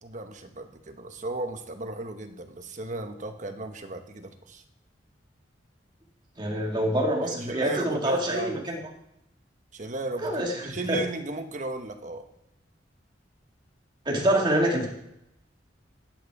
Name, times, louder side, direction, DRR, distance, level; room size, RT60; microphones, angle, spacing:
voice 1, 0.0-4.6 7.2-8.6 9.7-12.2, right 2 dB, 40° right, 6 dB, 1.0 m, -35 dB
voice 2, 6.4-8.8 10.2-11.0 14.1-14.9, right 1 dB, 25° right, 0 dB, 2.0 m, -26 dB
9.5 x 9.1 x 4.8 m, 0.81 s
head